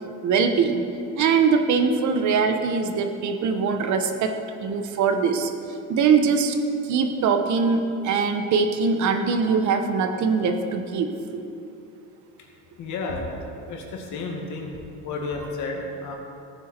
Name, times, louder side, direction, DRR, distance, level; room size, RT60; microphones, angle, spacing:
voice 1, 0.2-0.8 1.2-4.3 4.6-5.5 5.9-6.6 6.8-11.1, right 5 dB, 60° right, 6 dB, 1.0 m, -22 dB
voice 2, 12.8-14.7 15.0-16.1, left 3 dB, 65° left, 0 dB, 2.1 m, -32 dB
15.0 x 9.3 x 4.4 m, 2.7 s
cardioid pair, 135°, 33 cm